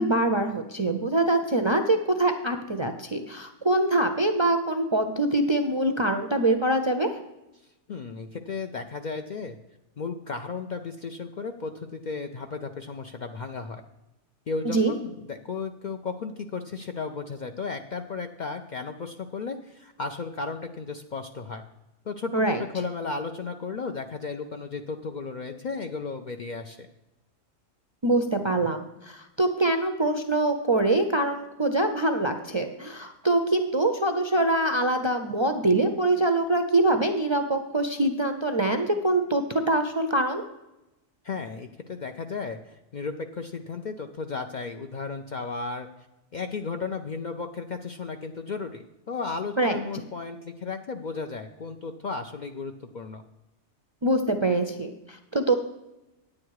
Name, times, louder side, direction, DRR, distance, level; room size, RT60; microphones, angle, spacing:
voice 1, 0.0-7.1 14.6-14.9 22.3-22.6 28.0-40.4 49.6-49.8 54.0-55.5, right 2 dB, 35° right, 5 dB, 0.4 m, -24 dB
voice 2, 7.9-9.6 10.0-13.8 14.5-21.6 22.1-26.9 41.2-45.9 46.3-53.2, left 4 dB, 55° left, 6 dB, 0.5 m, -34 dB
9.7 x 8.6 x 4.7 m, 0.96 s
omnidirectional pair, 1.2 m